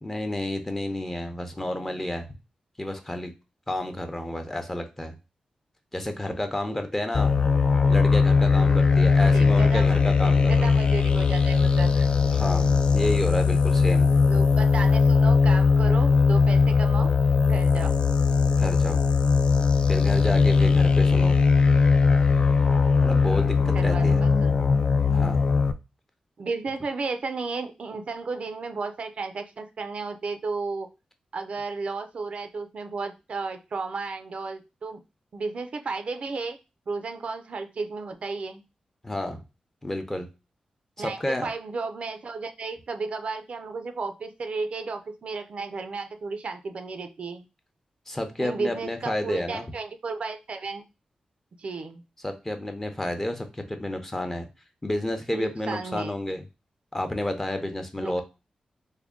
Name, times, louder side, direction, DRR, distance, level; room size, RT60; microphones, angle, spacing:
voice 1, 0.0-2.3 2.8-3.3 3.7-5.2 5.9-7.3 7.9-10.7 12.3-14.1 18.6-19.0 19.9-21.4 23.0-24.2 25.1-25.4 39.0-39.4 39.8-40.3 41.0-41.5 48.1-49.7 52.2-54.5 54.8-56.4 56.9-58.2, left 1 dB, 15° left, 6 dB, 0.7 m, -30 dB
sound 1, 7.1-25.7, left 5 dB, 45° left, 0.3 m, -20 dB
voice 2, 9.3-10.0 10.5-12.1 14.3-17.2 17.4-18.0 23.6-24.6 26.4-30.9 31.3-35.0 35.3-36.6 36.9-38.6 41.0-47.5 48.4-50.8 51.6-52.0 55.3-56.1 58.0-58.2, right 4 dB, 60° right, 7 dB, 0.4 m, -33 dB
3.5 x 2.2 x 3.6 m, 0.27 s
wide cardioid pair, 95°, 2 cm